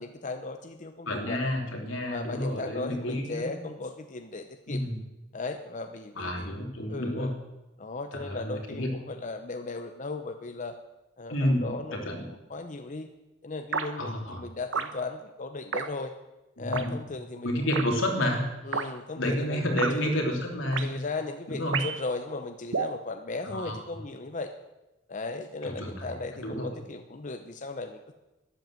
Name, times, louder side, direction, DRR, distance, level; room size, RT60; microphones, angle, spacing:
voice 1, 0.0-1.5 2.1-4.8 5.3-6.5 6.9-7.3 7.8-10.8 11.2-13.1 13.4-16.1 16.6-17.7 18.6-20.1 20.8-24.5 25.1-28.1, left 3 dB, 40° left, 7 dB, 0.8 m, -37 dB
voice 2, 1.0-3.5 4.7-5.0 6.2-7.3 8.2-8.9 11.3-12.2 14.0-14.4 16.6-16.9 17.4-18.4 19.2-21.0 21.5-21.8 23.4-23.8 25.6-26.1 26.4-26.7, left 1 dB, 85° left, 1 dB, 3.3 m, -30 dB
sound 1, 13.7-13.9 14.7-14.9 15.7-15.9 16.7-16.9 17.7-17.9 18.7-18.9 19.8-19.9 20.7-20.9 21.7-22.0 22.7-23.0, right 5 dB, 75° right, 1.1 m, -30 dB
12.5 x 10.5 x 7.8 m, 1.0 s
head